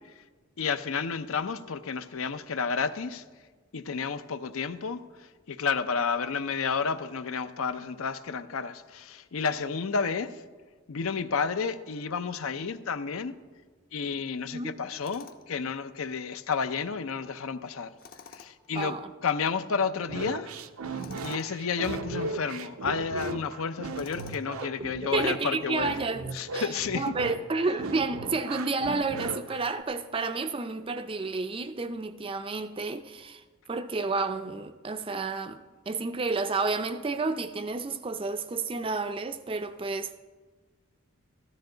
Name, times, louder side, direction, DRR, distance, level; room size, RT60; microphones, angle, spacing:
voice 1, 0.6-3.2 3.7-10.4 10.9-13.3 13.9-17.9 18.3-19.0 19.2-20.6 20.9-26.0 26.3-27.2, left 5 dB, 75° left, 0.6 m, -31 dB
Tools, 15.0-15.6 18.0-18.7 21.0-21.5 24.0-24.7, left 6 dB, 45° left, 0.7 m, -49 dB
voice 2, 18.7-19.1 25.0-26.2 26.5-26.7 26.9-40.1, right 3 dB, 25° right, 0.4 m, -31 dB
sound 1, 20.1-29.8, right 3 dB, 80° right, 0.6 m, -37 dB
14.0 x 12.0 x 3.9 m
head